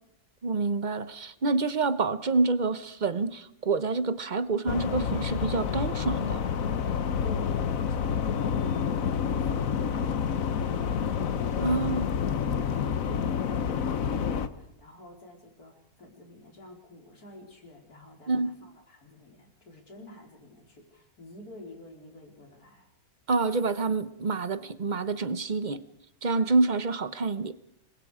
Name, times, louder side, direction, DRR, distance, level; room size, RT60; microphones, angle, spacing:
voice 1, 0.4-6.4 11.6-12.1 18.3-18.5 23.3-25.8 26.2-27.5, right 3 dB, 35° right, 0.9 m, -27 dB
sound 1, 4.7-14.5, left 7 dB, 65° left, 1.4 m, -28 dB
voice 2, 7.2-11.1 11.7-12.0 12.8-22.9, left 1 dB, 80° left, 4.8 m, -49 dB
27.5 x 22.0 x 5.0 m
omnidirectional pair, 1.6 m